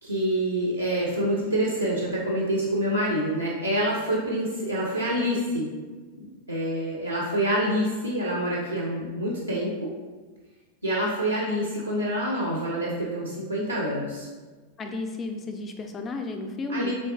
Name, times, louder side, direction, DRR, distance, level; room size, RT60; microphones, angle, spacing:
voice 1, 0.0-5.7 6.2-9.9 10.8-14.3 16.7-16.9, equal, 85° right, -3 dB, 0.5 m, -27 dB
voice 2, 14.8-16.9, left 3 dB, 25° left, 5 dB, 0.4 m, -33 dB
3.4 x 3.0 x 2.6 m, 1.4 s
figure-of-eight pair, 90°, 0 cm